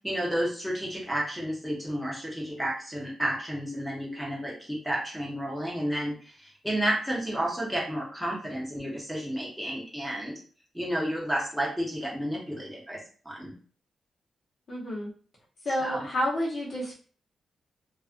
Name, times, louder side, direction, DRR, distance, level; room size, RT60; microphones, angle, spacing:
voice 1, 0.0-10.4 10.7-13.0 13.2-13.5 15.8-16.1, equal, ahead, -4 dB, 0.8 m, -31 dB
voice 2, 14.7-15.1 15.6-16.9, equal, 50° left, -4 dB, 1.0 m, -29 dB
2.4 x 2.3 x 2.5 m, 0.41 s
wide cardioid pair, 150°, 0 cm